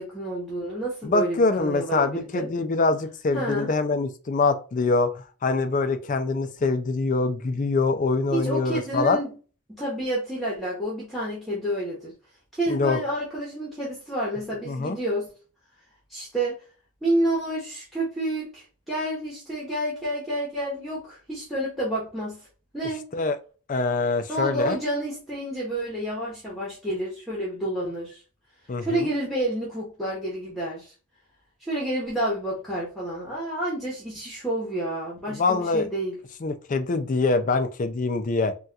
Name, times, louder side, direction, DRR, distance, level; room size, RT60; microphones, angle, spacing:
voice 1, 0.0-2.5 3.3-3.7 8.3-9.3 9.7-12.1 12.5-15.3 16.1-16.6 17.0-22.5 22.7-23.0 24.3-28.2 28.8-30.9 31.6-36.2, right 1 dB, ahead, -6 dB, 0.9 m, -29 dB
voice 2, 1.0-9.2 12.7-13.0 14.7-15.0 23.1-23.4 23.7-24.8 28.7-29.1 35.3-35.9 36.4-38.5, left 3 dB, 35° left, 9 dB, 0.4 m, -24 dB
4.0 x 2.4 x 2.3 m, 0.36 s
head